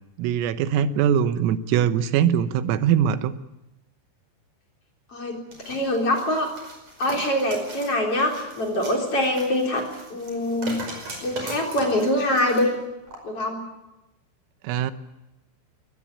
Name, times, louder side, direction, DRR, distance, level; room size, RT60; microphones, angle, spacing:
voice 1, 0.2-3.3 14.6-14.9, right 9 dB, 85° right, 12 dB, 3.7 m, -22 dB
sound 1, 5.5-12.6 13.1-13.2, right 2 dB, 35° right, 6.0 m, -39 dB
voice 2, 5.7-6.5 7.0-9.8 10.1-10.8 11.2-12.7 13.2-13.6, left 1 dB, 30° left, 1 dB, 4.1 m, -24 dB
23.0 x 18.0 x 9.9 m, 0.98 s
omnidirectional pair, 5.9 m